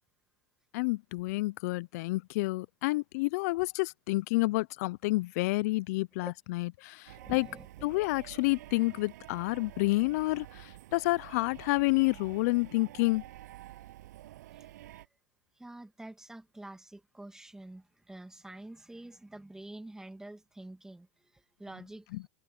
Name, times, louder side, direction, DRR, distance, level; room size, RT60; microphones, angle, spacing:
voice 1, 0.7-7.5 7.8-13.2, left 22 dB, 65° left, 0.4 m, -29 dB
sound 1, 7.1-15.1, right 15 dB, 80° right, 7.7 m, -49 dB
voice 2, 7.2-7.7 14.6-14.7 15.6-21.1 21.6-22.1, right 1 dB, 5° right, 2.4 m, -47 dB
supercardioid pair, 115°, 9 cm